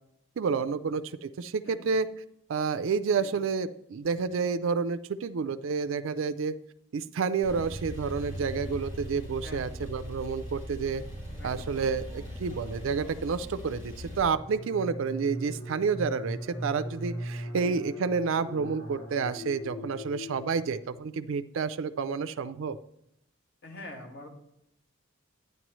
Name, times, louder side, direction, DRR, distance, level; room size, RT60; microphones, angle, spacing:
voice 1, 0.4-2.1 2.5-6.5 6.9-11.0 11.4-22.8, right 5 dB, 70° right, 11 dB, 0.4 m, -30 dB
Male speech man speaking / Car / Idling, 7.4-14.2, equal, 35° left, 3.7 m, -40 dB
voice 2, 11.4-11.7 17.6-17.8 23.6-24.3, left 1 dB, 50° left, 2 dB, 1.8 m, -44 dB
sound 1, 14.1-21.1, equal, 85° left, 2.6 m, -39 dB
11.0 x 9.4 x 3.1 m, 0.78 s
head